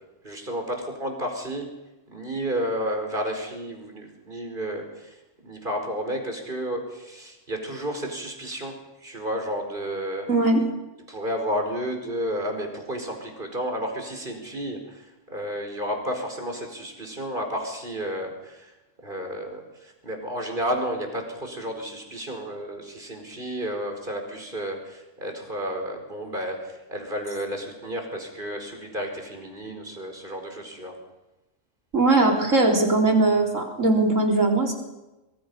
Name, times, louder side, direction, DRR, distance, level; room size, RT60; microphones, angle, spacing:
voice 1, 0.2-1.7 2.1-8.7 9.0-10.3 11.1-18.7 19.0-31.0, equal, 40° right, 3 dB, 4.9 m, -32 dB
voice 2, 10.3-10.6 31.9-34.7, right 2 dB, 85° right, 1 dB, 4.4 m, -20 dB
25.0 x 23.0 x 5.5 m, 1.0 s
omnidirectional pair, 1.3 m